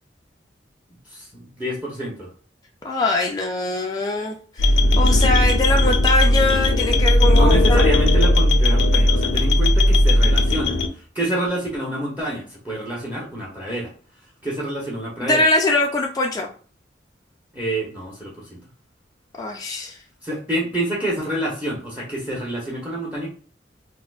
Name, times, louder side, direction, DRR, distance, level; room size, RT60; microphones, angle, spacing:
voice 1, 1.1-2.3 7.3-13.9 14.4-15.5 17.5-18.6 20.2-23.3, right 1 dB, 10° right, -3 dB, 0.8 m, -28 dB
voice 2, 2.8-7.9 15.2-16.5 19.4-20.0, left 2 dB, 20° left, 0 dB, 0.4 m, -22 dB
sound 1, 4.6-10.9, left 1 dB, 90° left, 0.5 m, -16 dB
4.2 x 2.1 x 2.4 m, 0.42 s
head